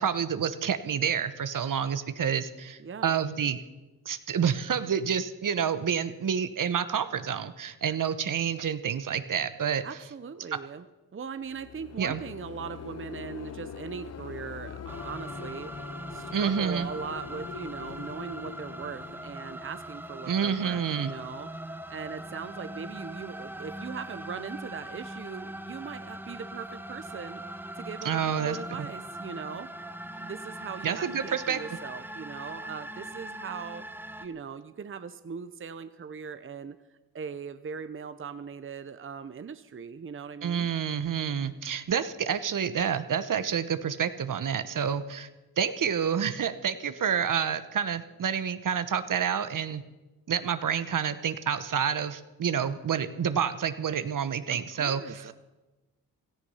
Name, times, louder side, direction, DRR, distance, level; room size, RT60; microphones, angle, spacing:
voice 1, 0.0-3.6 4.1-9.8 10.5-10.6 12.0-12.2 16.3-16.9 20.3-21.1 28.0-28.9 30.8-31.6 40.4-45.3 45.6-49.8 50.3-55.3, right 7 dB, 60° right, 12 dB, 1.0 m, -28 dB
voice 2, 2.8-3.2 7.9-8.0 9.8-10.9 11.1-15.7 16.1-27.4 27.8-29.9 30.2-33.8 34.2-36.8 37.1-40.7 54.5-55.3, right 6 dB, 35° right, 12 dB, 0.8 m, -40 dB
sound 1, 11.4-20.4, left 8 dB, 45° left, 0.6 m, -44 dB
sound 2, 14.9-34.3, right 1 dB, 5° right, 1.5 m, -41 dB
16.5 x 13.5 x 5.6 m, 1.1 s
cardioid pair, 60°, 37 cm